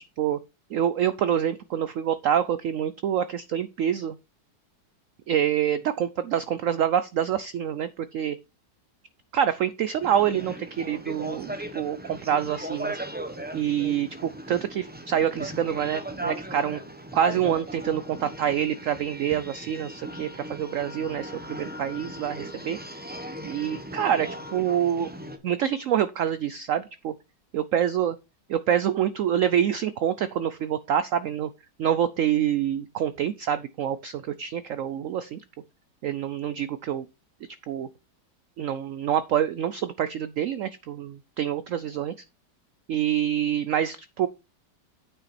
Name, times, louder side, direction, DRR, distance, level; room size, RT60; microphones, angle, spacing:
voice 1, 0.7-4.2 5.3-8.4 9.3-13.0 13.5-16.8 17.1-22.8 23.4-25.1 25.4-27.1 27.5-28.2 28.5-31.5 31.8-35.4 36.0-37.0 37.7-37.9 38.6-42.1 42.9-44.3, right 9 dB, 80° right, 0.7 m, -26 dB
sound 1, 10.0-25.4, right 1 dB, 10° right, 0.5 m, -37 dB
8.9 x 5.6 x 4.2 m
omnidirectional pair, 1.9 m